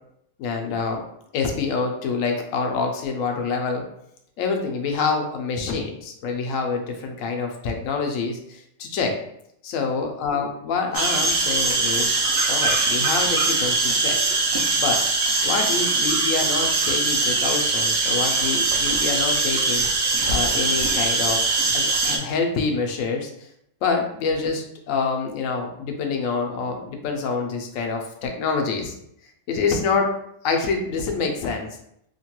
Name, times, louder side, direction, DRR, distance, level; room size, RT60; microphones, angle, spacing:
voice 1, 0.4-1.0 1.3-3.8 4.4-9.2 9.6-12.2 12.4-14.2 14.8-15.0 15.4-19.9 20.3-21.5 21.7-23.5 23.8-28.9 29.5-30.1 30.4-31.8, left 4 dB, 85° left, 3 dB, 1.0 m, -26 dB
sound 1, 10.9-22.2, right 3 dB, 65° right, 0.7 m, -22 dB
2.9 x 2.2 x 2.9 m, 0.74 s
omnidirectional pair, 1.3 m